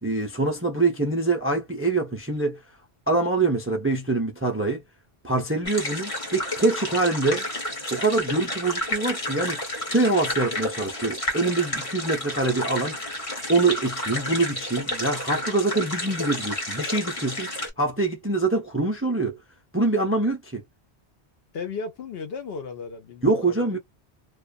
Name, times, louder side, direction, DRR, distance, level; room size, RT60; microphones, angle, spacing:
voice 1, 0.0-2.6 3.1-4.8 5.2-7.4 7.9-9.6 9.9-12.9 13.5-17.5 17.8-19.4 19.7-20.6 23.2-23.8, right 3 dB, 20° right, 0.4 m, -24 dB
sound 1, 5.6-17.7, left 1 dB, 30° left, 1.2 m, -31 dB
voice 2, 21.5-23.8, left 5 dB, 65° left, 0.9 m, -35 dB
2.4 x 2.2 x 2.3 m
omnidirectional pair, 1.1 m